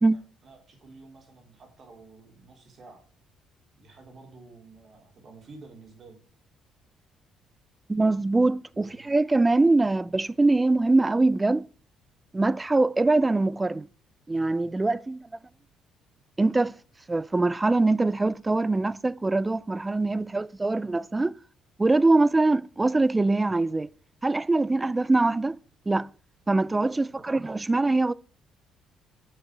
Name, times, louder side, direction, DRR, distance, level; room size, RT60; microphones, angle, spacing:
voice 1, 0.0-3.0 3.8-6.2 8.7-9.1 26.9-27.3, right 3 dB, 45° right, 3.7 m, -51 dB
voice 2, 7.9-11.7 12.3-13.9 14.3-15.3 16.4-16.8 17.1-21.4 21.8-23.9 24.2-25.6 25.9-26.1 26.5-28.1, right 2 dB, 15° right, 0.4 m, -23 dB
9.9 x 6.5 x 4.6 m
cardioid pair, 110°, 0 cm